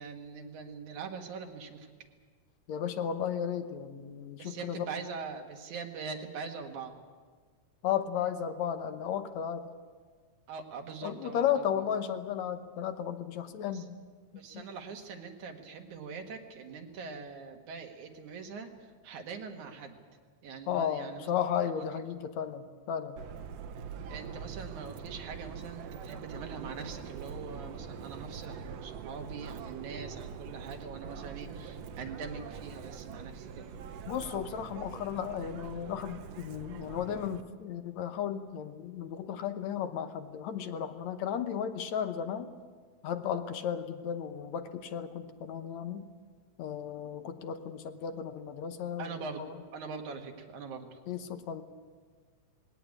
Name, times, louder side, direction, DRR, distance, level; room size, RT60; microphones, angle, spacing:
voice 1, 0.0-1.9 4.4-7.0 10.5-11.9 13.4-13.9 14.3-20.0 20.4-21.3 21.7-21.9 24.1-33.7 49.0-49.4 49.7-51.0, right 5 dB, 85° right, 3 dB, 3.2 m, -43 dB
voice 2, 2.7-4.9 7.8-9.7 11.0-14.0 14.5-14.6 20.7-23.2 34.1-42.5 43.0-46.1 46.6-49.1 49.4-49.5 51.1-51.6, left 8 dB, 75° left, 9 dB, 2.3 m, -34 dB
Subway metro underground, 23.2-37.4, right 6 dB, 70° right, 1.9 m, -44 dB
20.5 x 17.5 x 8.7 m, 1.5 s
omnidirectional pair, 3.3 m